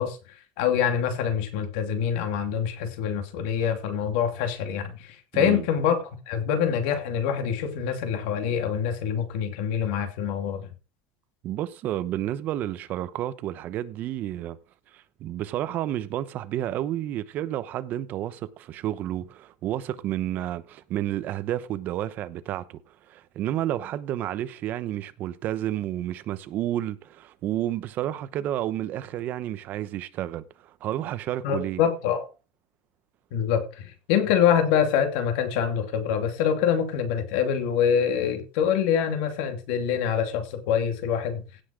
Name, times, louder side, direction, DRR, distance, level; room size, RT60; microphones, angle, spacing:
voice 1, 0.0-10.7 31.4-32.3 33.3-41.4, left 8 dB, 65° left, 2.6 m, -25 dB
voice 2, 5.3-5.6 11.4-14.6 14.9-22.8 23.1-31.8, right 12 dB, 35° right, 0.8 m, -31 dB
16.5 x 5.9 x 4.9 m
cardioid pair, 170°, 5 cm